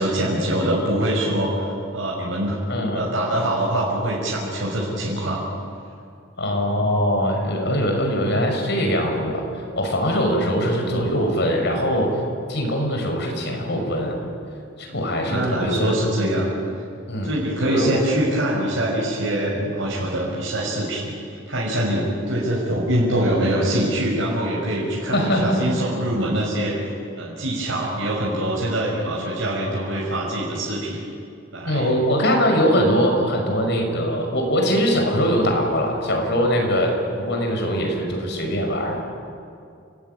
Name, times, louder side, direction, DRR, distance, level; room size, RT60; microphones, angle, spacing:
voice 1, 0.0-5.5 14.8-15.0 15.3-16.5 17.2-21.2 21.5-26.9 27.2-31.0 31.5-31.9, right 1 dB, 70° right, -4 dB, 5.6 m, -24 dB
voice 2, 2.7-3.1 6.4-12.2 12.5-14.2 14.8-16.0 17.1-17.4 17.7-17.9 25.1-25.6 31.6-39.0, equal, 60° left, 3 dB, 6.0 m, -22 dB
29.5 x 18.5 x 9.4 m, 2.4 s
head